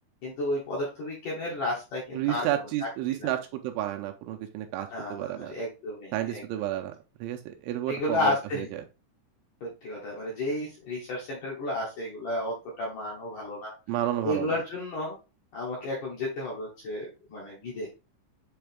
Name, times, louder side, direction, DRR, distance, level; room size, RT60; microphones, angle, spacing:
voice 1, 0.2-2.5 2.8-2.9 3.2-3.3 4.9-6.4 7.9-8.7 9.6-13.7 14.2-15.2 15.5-17.9, left 1 dB, 65° left, -4 dB, 2.0 m, -32 dB
voice 2, 2.1-5.5 6.1-6.9 7.2-8.8 13.9-14.5, right 13 dB, 85° right, 4 dB, 2.9 m, -31 dB
7.9 x 3.4 x 3.5 m, 0.30 s
omnidirectional pair, 5.8 m